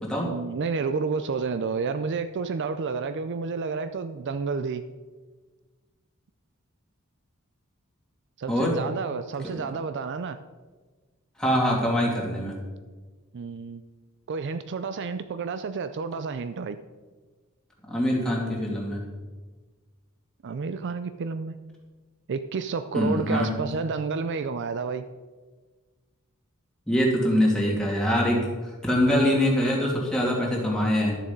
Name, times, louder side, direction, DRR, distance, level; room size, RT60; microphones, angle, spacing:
voice 1, 0.2-4.8 8.4-10.4 13.3-13.8 14.3-16.8 20.4-21.6 22.3-25.0, right 4 dB, 55° right, 11 dB, 0.4 m, -30 dB
voice 2, 11.4-12.6 17.9-19.0 22.9-23.5 26.9-28.5 28.8-31.2, equal, 5° left, -4 dB, 2.7 m, -23 dB
11.5 x 7.1 x 5.2 m, 1.4 s
head